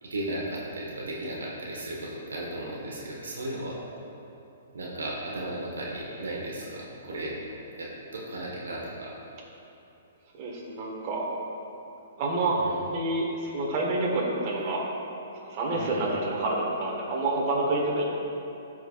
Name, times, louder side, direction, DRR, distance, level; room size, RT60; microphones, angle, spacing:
voice 1, 0.0-3.8 4.7-7.4 7.8-9.1 12.5-12.8 15.7-16.0, right 1 dB, 85° right, -3 dB, 1.3 m, -35 dB
voice 2, 10.3-11.3 12.2-12.6 12.9-14.9 15.4-18.1, right 2 dB, 40° right, -3 dB, 1.4 m, -28 dB
13.0 x 4.5 x 2.4 m, 2.9 s
hypercardioid pair, 135°, 0 cm